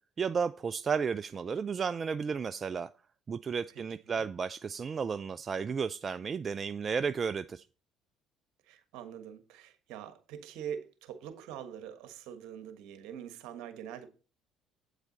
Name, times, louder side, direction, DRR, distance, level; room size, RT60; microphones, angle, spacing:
voice 1, 0.2-2.9 3.3-7.7, right 6 dB, 40° right, 0.4 m, -33 dB
voice 2, 8.6-14.1, right 9 dB, 75° right, 1.4 m, -44 dB
8.5 x 8.0 x 4.0 m
supercardioid pair, 70°, 0 cm